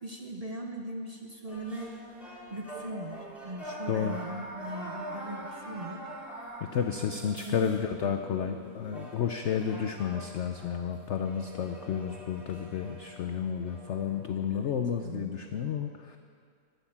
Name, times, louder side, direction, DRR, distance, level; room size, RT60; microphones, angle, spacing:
voice 1, 0.0-2.0 2.5-6.1 7.4-7.6 14.5-15.4, right 2 dB, 65° right, 2 dB, 0.3 m, -40 dB
sound 1, 1.5-14.2, equal, ahead, 2.8 m, -44 dB
voice 2, 6.6-16.2, left 7 dB, 70° left, 6 dB, 0.6 m, -31 dB
12.0 x 9.4 x 7.2 m, 2.1 s
omnidirectional pair, 1.9 m